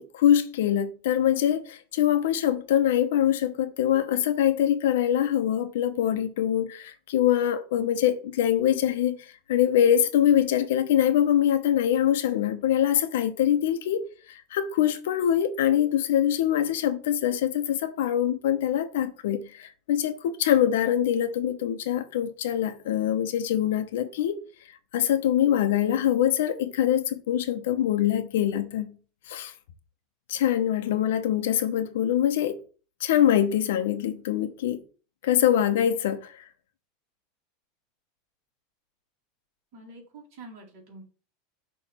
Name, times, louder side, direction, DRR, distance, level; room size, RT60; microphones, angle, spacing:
voice 1, 0.0-9.2 9.5-24.4 24.9-29.0 29.3-29.5 30.3-32.6 33.0-34.8 35.2-36.4, left 10 dB, 80° left, 0.8 m, -24 dB
voice 2, 39.7-41.0, right 2 dB, 50° right, 2.7 m, -46 dB
6.2 x 3.1 x 5.5 m
supercardioid pair, 170°, 0 cm